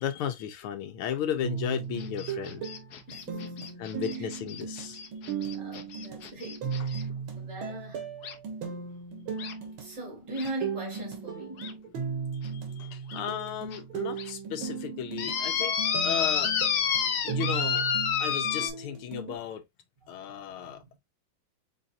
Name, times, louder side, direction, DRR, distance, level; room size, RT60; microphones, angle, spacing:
voice 1, 0.0-2.6 3.8-5.1 12.5-15.8 16.0-16.5 17.2-17.9 18.2-19.6 20.1-20.8, left 9 dB, 90° left, 1.6 m, -34 dB
sound 1, 1.4-19.4, right 6 dB, 75° right, 2.1 m, -36 dB
sound 2, 2.0-7.0 8.2-8.3 9.4-9.5 10.4-10.5 10.9-11.0 11.6-11.7 12.4-12.5 13.1-13.2 13.7-13.8 14.2-14.3 15.2-18.7, left 7 dB, 60° left, 1.1 m, -30 dB
voice 2, 3.1-4.3 5.4-7.1 7.3-8.1 9.8-11.7 16.9-17.4 20.0-21.0, right 1 dB, 35° right, 2.4 m, -41 dB
4.5 x 4.1 x 2.6 m
omnidirectional pair, 2.3 m